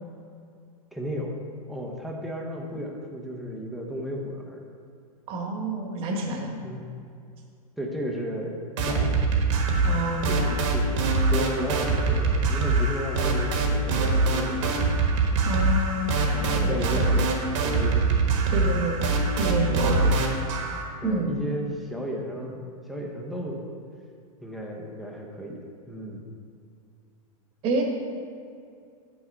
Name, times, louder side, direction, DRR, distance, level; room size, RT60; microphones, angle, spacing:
voice 1, 0.9-1.3 1.7-4.6 6.6-6.8 7.8-9.3 9.8-14.9 16.3-18.1 18.6-18.8 19.7-20.1 21.0-23.8 24.4-25.6 25.9-26.2, equal, ahead, -2 dB, 0.8 m, -34 dB
voice 2, 5.3-6.5 9.8-10.6 15.4-17.0 18.5-19.1 19.4-20.1 21.0-21.3 27.6-27.8, right 2 dB, 30° right, 1 dB, 1.2 m, -28 dB
sound 1, 8.8-20.8, right 3 dB, 55° right, 1.3 m, -24 dB
9.3 x 6.2 x 4.4 m, 2.3 s
supercardioid pair, 160°, 19 cm